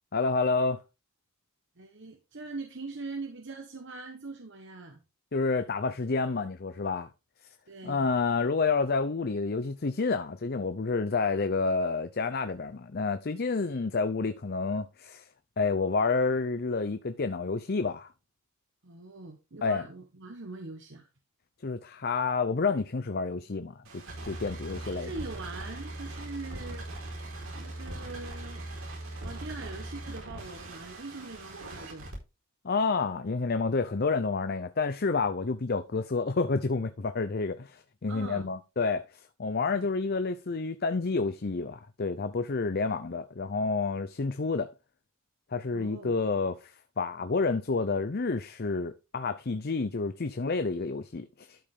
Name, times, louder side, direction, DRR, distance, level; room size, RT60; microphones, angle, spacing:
voice 1, 0.1-0.8 5.3-7.1 7.8-15.3 15.6-18.1 19.6-19.8 21.6-23.8 24.2-25.1 32.6-44.7 45.5-51.6, left 4 dB, 45° left, 0.6 m, -29 dB
voice 2, 1.8-5.0 7.7-8.1 18.8-21.1 24.7-27.3 27.5-28.6 29.2-32.1 38.1-38.5 39.7-39.9 45.7-46.2, right 3 dB, 55° right, 1.2 m, -42 dB
sound 1, 23.8-32.2, right 1 dB, 75° right, 4.4 m, -40 dB
12.0 x 5.5 x 3.6 m
head